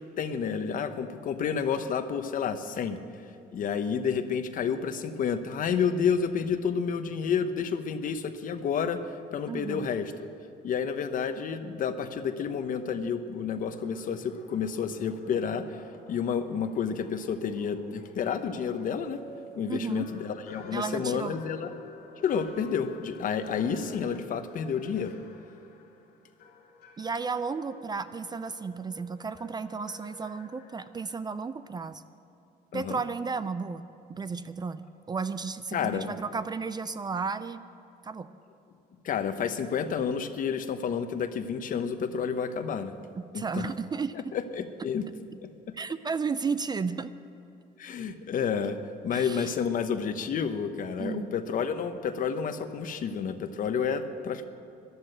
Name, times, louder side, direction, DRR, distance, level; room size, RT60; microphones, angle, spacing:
voice 1, 0.2-3.0 3.5-10.3 10.6-15.8 16.1-19.2 19.5-21.7 22.2-25.1 32.7-33.0 35.7-36.1 39.0-42.9 43.3-43.7 44.1-45.1 45.4-45.5 47.8-48.8 49.0-54.4, left 6 dB, 55° left, 9 dB, 1.0 m, -30 dB
voice 2, 9.5-9.9 19.7-20.1 20.7-21.4 27.0-32.0 32.7-37.6 38.0-38.3 43.2-44.3 45.7-47.1 49.1-49.5 51.0-51.4, right 5 dB, 25° right, 13 dB, 0.5 m, -33 dB
sound 1, 13.7-31.1, left 3 dB, 70° left, 2.3 m, -49 dB
13.5 x 11.5 x 8.1 m, 2.8 s
cardioid pair, 110°, 17 cm